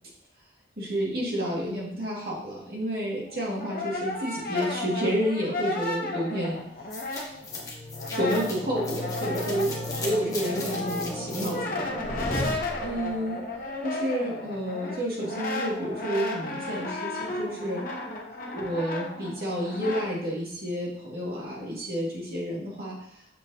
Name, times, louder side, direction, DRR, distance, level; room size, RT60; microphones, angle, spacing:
voice 1, 0.8-6.6 8.1-9.7 10.0-12.2 12.8-13.4 13.8-17.8 18.5-23.0, equal, 55° right, -5 dB, 2.1 m, -30 dB
Brass instrument, 3.2-7.6 7.9-20.1, left 2 dB, 50° left, 0.9 m, -34 dB
sound 1, 6.9-13.3, left 2 dB, 20° left, 0.9 m, -35 dB
6.7 x 6.1 x 2.8 m, 0.70 s
head